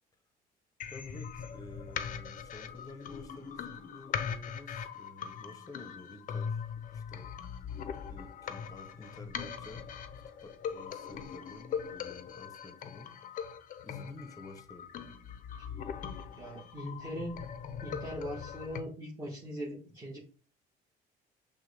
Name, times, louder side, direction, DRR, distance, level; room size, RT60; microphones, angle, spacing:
sound 1, 0.8-18.8, left 7 dB, 50° left, 0.5 m, -41 dB
voice 1, 0.9-6.6 6.9-7.3 8.1-9.8 10.4-13.4 13.8-14.9, left 2 dB, 20° left, 7 dB, 0.8 m, -50 dB
voice 2, 16.4-17.4 17.8-20.2, equal, 20° right, -5 dB, 1.3 m, -40 dB
5.9 x 2.2 x 3.3 m, 0.39 s
cardioid pair, 110°, 17 cm